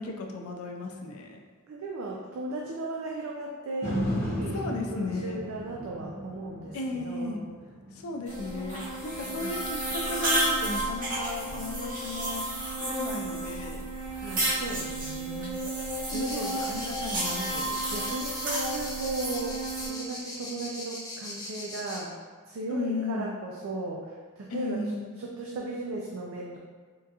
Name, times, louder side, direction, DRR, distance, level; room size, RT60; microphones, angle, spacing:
voice 1, 0.0-1.4 4.5-5.4 6.7-7.4 7.9-13.9 16.1-17.8 22.7-23.3 24.5-25.1, left 2 dB, 80° left, 2 dB, 0.4 m, -35 dB
voice 2, 1.7-7.4 9.2-9.6 14.1-15.6 16.1-16.5 17.3-17.5 17.9-22.1 22.5-24.8 25.2-26.6, right 2 dB, 70° right, -2 dB, 0.4 m, -36 dB
sound 1, 3.8-12.0 12.5-12.6, equal, 50° left, 0.8 m, -37 dB
sound 2, 8.3-19.9, right 2 dB, 40° right, 0.8 m, -32 dB
sound 3, 16.1-22.0, left 2 dB, 20° left, 0.6 m, -40 dB
3.6 x 2.3 x 2.7 m, 1.5 s
head